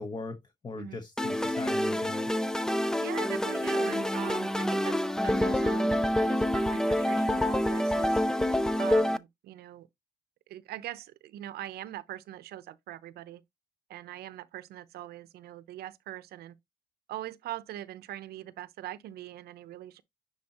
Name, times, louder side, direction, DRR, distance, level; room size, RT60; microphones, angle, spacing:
voice 1, 0.0-2.3, left 3 dB, 25° left, 1.1 m, -40 dB
sound 1, 1.2-9.2, left 1 dB, 5° left, 0.4 m, -27 dB
voice 2, 3.0-8.2 8.8-9.9 10.5-13.4 13.9-16.6 17.1-20.0, right 13 dB, 70° right, 0.7 m, -42 dB
9.7 x 3.9 x 2.9 m
cardioid pair, 110°, 17 cm